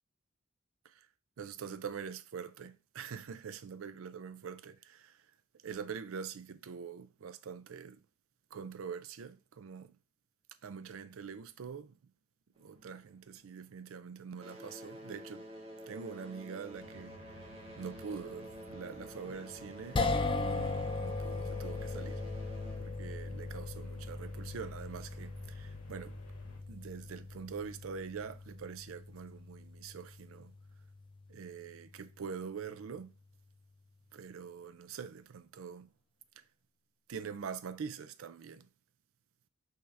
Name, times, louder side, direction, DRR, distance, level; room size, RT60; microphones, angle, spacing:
voice 1, 1.4-5.3 5.6-8.0 8.5-10.0 10.6-12.1 12.6-15.5 15.9-22.2 22.8-26.2 26.7-30.6 31.3-33.1 34.1-35.9 36.4-36.5 37.1-38.7, right 6 dB, 75° right, 0.4 m, -44 dB
sound 1, 12.6-13.9 14.2-24.5 25.4-25.5 26.2-26.3 26.9-27.0, equal, 25° right, 0.9 m, -50 dB
sound 2, 16.7-26.6, equal, 85° left, 1.4 m, -55 dB
sound 3, 20.0-32.3, left 3 dB, 25° left, 0.3 m, -39 dB
5.7 x 2.7 x 3.2 m
head